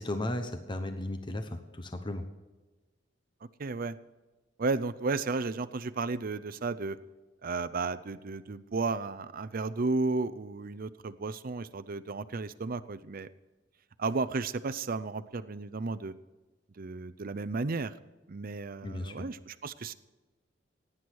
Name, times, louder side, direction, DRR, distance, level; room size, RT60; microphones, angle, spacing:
voice 1, 0.0-2.2 18.8-19.1, left 1 dB, 25° left, 7 dB, 0.9 m, -35 dB
voice 2, 3.6-4.0 4.6-7.0 7.4-13.3 14.0-16.1 16.8-17.9 18.3-19.9, right 3 dB, 50° right, 14 dB, 0.6 m, -33 dB
17.0 x 9.9 x 4.7 m, 1.2 s
head